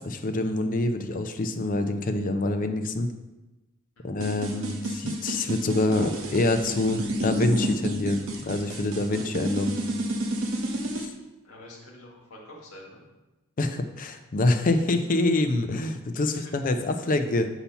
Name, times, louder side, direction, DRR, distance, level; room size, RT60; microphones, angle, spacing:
voice 1, 0.0-3.1 4.0-9.8 11.0-11.1 13.6-17.5, left 2 dB, 40° left, 7 dB, 0.4 m, -26 dB
sound 1, 4.2-11.1, right 1 dB, 65° right, 0.7 m, -30 dB
voice 2, 11.4-13.0 16.2-16.5, left 1 dB, 80° left, -2 dB, 1.4 m, -47 dB
6.9 x 2.8 x 5.6 m, 1.1 s
head